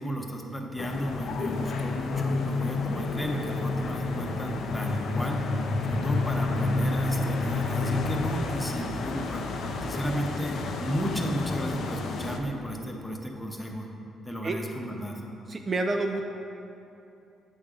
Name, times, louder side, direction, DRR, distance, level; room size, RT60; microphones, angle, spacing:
voice 1, 0.0-5.5 5.8-9.5 9.8-13.9 14.2-15.2, equal, 10° left, 1 dB, 0.8 m, -34 dB
sound 1, 0.8-12.4, left 3 dB, 70° left, 0.5 m, -30 dB
sound 2, 3.2-11.1, right 3 dB, 80° right, 0.6 m, -46 dB
voice 2, 15.5-16.2, right 2 dB, 35° right, 4 dB, 0.4 m, -28 dB
7.9 x 3.6 x 5.0 m, 2.7 s
cardioid pair, 90°, 0 cm